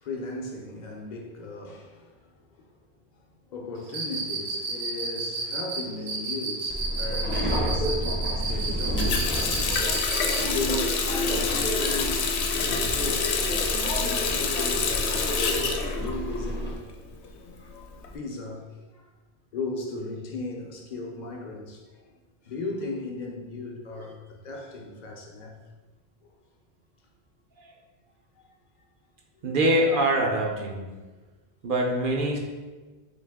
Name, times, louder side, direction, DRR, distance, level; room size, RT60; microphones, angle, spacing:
voice 1, 0.0-2.1 3.5-9.8 10.2-13.3 14.0-16.9 17.6-17.7 18.1-19.0 19.5-21.8 22.4-25.6 26.2-26.3, left 2 dB, 50° left, 1 dB, 0.7 m, -36 dB
Cricket, 3.9-10.5, right 4 dB, 85° right, 1.0 m, -32 dB
Subway metro underground, 6.7-16.7, equal, 15° left, 0.6 m, -30 dB
Water tap faucet, 9.0-16.7 17.0-18.1, left 5 dB, 90° left, 0.8 m, -27 dB
voice 2, 29.4-30.9 31.6-32.4, right 1 dB, 60° right, 0 dB, 0.8 m, -24 dB
3.9 x 3.1 x 3.5 m, 1.3 s
omnidirectional pair, 1.1 m